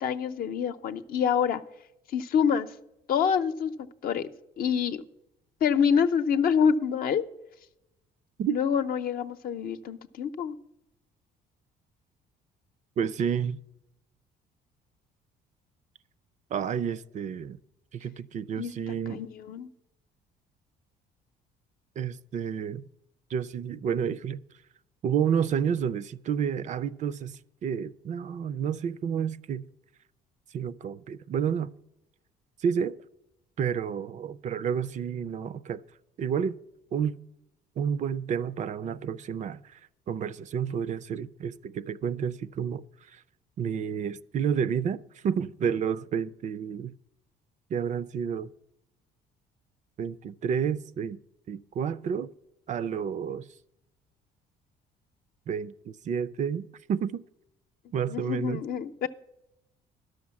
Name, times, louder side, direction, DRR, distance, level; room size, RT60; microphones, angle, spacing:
voice 1, 0.0-1.6 2.1-2.7 3.1-3.7 4.0-4.3 4.6-5.0 5.6-7.2 8.5-10.6 18.6-19.7 58.1-59.1, left 7 dB, 60° left, 0.7 m, -26 dB
voice 2, 13.0-13.6 16.5-17.6 17.9-19.2 22.0-22.8 23.3-24.4 25.0-29.6 30.5-31.7 32.6-33.0 33.6-35.8 36.2-36.6 36.9-37.2 37.8-39.8 40.1-43.2 43.6-46.9 47.7-48.5 50.0-51.2 51.5-52.3 52.7-53.5 55.5-57.2 57.9-58.6, right 7 dB, 45° right, 0.4 m, -30 dB
11.5 x 6.5 x 7.1 m
cardioid pair, 110°, 17 cm